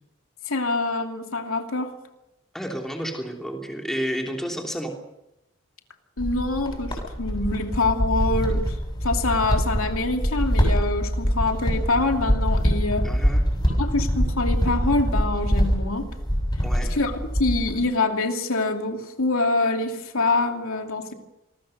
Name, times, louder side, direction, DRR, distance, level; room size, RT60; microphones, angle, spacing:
voice 1, 0.5-1.9 6.2-8.8 9.0-13.1 13.8-16.1 16.9-21.1, left 3 dB, 85° left, 4 dB, 2.7 m, -25 dB
voice 2, 2.5-4.9 13.0-13.4 16.6-16.9, equal, ahead, 1 dB, 3.2 m, -31 dB
sound 1, 6.2-17.8, equal, 20° left, 7.2 m, -24 dB
26.5 x 20.5 x 6.7 m, 0.90 s
head